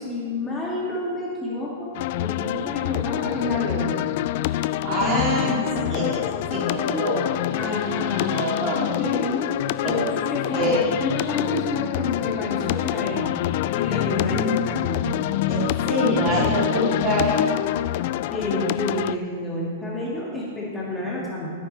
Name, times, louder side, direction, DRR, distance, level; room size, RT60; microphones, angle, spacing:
voice 1, 0.0-3.9 7.5-8.3 8.8-9.5 9.8-13.2 13.7-15.1 18.3-21.5, left 2 dB, 10° left, -6 dB, 2.2 m, -29 dB
sound 1, 1.9-19.2, left 14 dB, 50° left, 0.3 m, -26 dB
voice 2, 4.8-7.3 8.3-8.9 9.8-10.1 10.5-10.8 14.0-14.6 15.5-17.5, left 1 dB, 30° right, -4 dB, 3.1 m, -25 dB
13.5 x 9.8 x 3.4 m, 2.2 s
hypercardioid pair, 140°, 0 cm